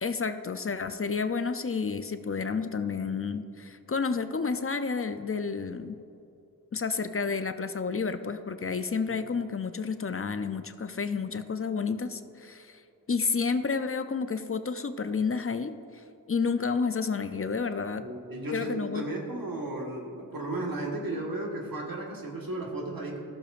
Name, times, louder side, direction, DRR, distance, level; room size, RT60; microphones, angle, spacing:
voice 1, 0.0-6.0 6.7-12.8 13.1-18.0 18.5-19.0, left 5 dB, 40° left, 10 dB, 0.5 m, -30 dB
voice 2, 18.0-23.2, right 2 dB, 75° right, -1 dB, 1.5 m, -34 dB
14.5 x 6.9 x 2.5 m, 2.8 s
wide cardioid pair, 55°, 35 cm